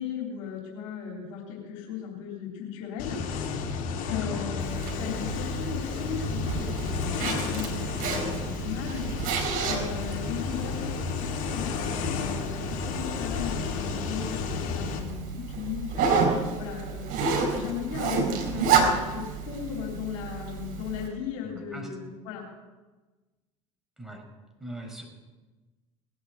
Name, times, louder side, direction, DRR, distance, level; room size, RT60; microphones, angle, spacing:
voice 1, 0.0-3.2 4.1-17.1 17.4-22.4, left 8 dB, 75° left, -1 dB, 3.6 m, -37 dB
sound 1, 3.0-15.0, left 5 dB, 55° left, 3.6 m, -32 dB
voice 2, 4.0-4.4 21.4-21.9 24.0-24.2 24.6-25.0, right 1 dB, ahead, 1 dB, 5.7 m, -40 dB
Zipper (clothing), 4.6-21.1, right 5 dB, 55° right, 4.7 m, -30 dB
19.5 x 8.8 x 8.1 m, 1.2 s
hypercardioid pair, 75°, 17 cm